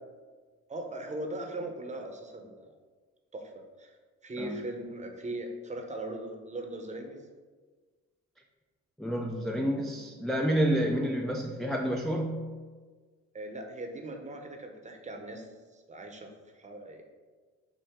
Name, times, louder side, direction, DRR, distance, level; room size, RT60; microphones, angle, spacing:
voice 1, 0.7-2.7 3.3-3.5 3.8-3.9 4.2-7.2 13.3-16.3 16.5-17.0, right 1 dB, 25° right, 3 dB, 0.7 m, -39 dB
voice 2, 9.0-12.5, equal, ahead, 0 dB, 0.3 m, -29 dB
5.8 x 2.6 x 3.6 m, 1.4 s
cardioid pair, 90°, 30 cm